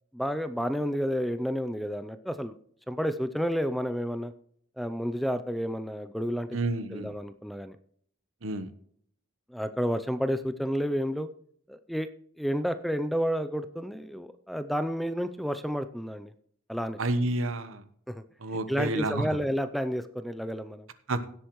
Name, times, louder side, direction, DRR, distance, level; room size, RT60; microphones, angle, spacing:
voice 1, 0.1-2.5 2.9-4.3 4.8-6.6 6.9-7.7 9.5-11.3 11.7-12.1 12.4-16.3 16.7-17.0 18.1-18.2 18.7-20.9, equal, ahead, 11 dB, 0.4 m, -30 dB
voice 2, 6.5-7.1 8.4-8.7 17.0-17.8 18.4-19.3 21.1-21.3, right 2 dB, 75° right, 12 dB, 1.0 m, -29 dB
17.0 x 8.0 x 3.1 m, 0.62 s
head